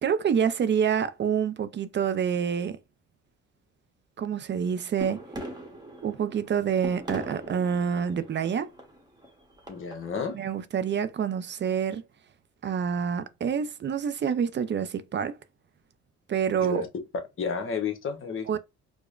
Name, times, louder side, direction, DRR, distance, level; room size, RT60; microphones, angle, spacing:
voice 1, 0.0-2.8 4.2-5.3 6.0-8.7 10.3-12.0 12.6-15.4 16.3-16.8 18.5-18.6, right 7 dB, 40° right, 0.4 m, -27 dB
sound 1, 5.0-10.3, right 1 dB, 15° right, 1.0 m, -41 dB
voice 2, 9.7-10.4 16.6-16.9 17.4-18.6, left 6 dB, 45° left, 0.9 m, -31 dB
4.8 x 2.1 x 2.4 m
cardioid pair, 90°, 30 cm